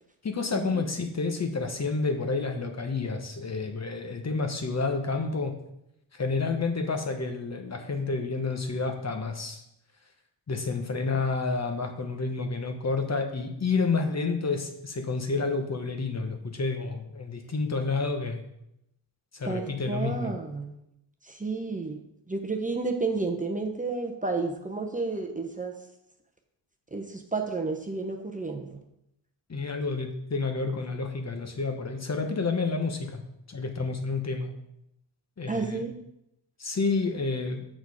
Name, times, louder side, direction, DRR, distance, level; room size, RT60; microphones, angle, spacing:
voice 1, 0.2-5.5 6.1-9.6 10.5-18.4 19.3-20.3 29.5-33.2 33.5-34.5 35.4-35.8 36.6-37.7, left 4 dB, 35° left, 5 dB, 1.1 m, -29 dB
voice 2, 19.4-20.8 21.2-22.0 22.3-25.7 26.9-28.8 35.5-35.9, right 3 dB, 20° right, 3 dB, 0.8 m, -31 dB
6.4 x 6.4 x 4.9 m, 0.81 s
cardioid pair, 90°, 44 cm